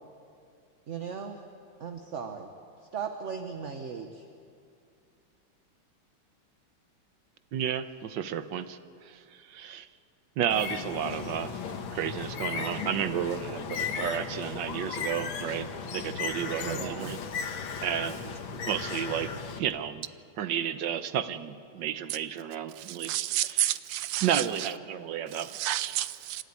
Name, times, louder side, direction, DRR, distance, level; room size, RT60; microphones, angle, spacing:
voice 1, 0.9-1.4 1.8-2.5 2.9-4.2 16.6-17.2, right 6 dB, 45° right, 1.1 m, -37 dB
voice 2, 7.5-8.8 9.0-9.2 9.5-9.9 10.4-11.5 11.9-17.2 17.8-18.4 18.7-19.3 19.6-20.0 20.4-23.1 23.5-23.7 24.2-25.5, right 9 dB, 65° right, 1.4 m, -32 dB
Bird, 10.5-19.6, left 6 dB, 70° left, 2.0 m, -36 dB
voice 3, 22.8-24.7 25.3-26.4, right 13 dB, 90° right, 1.6 m, -31 dB
27.5 x 13.0 x 9.6 m
omnidirectional pair, 2.3 m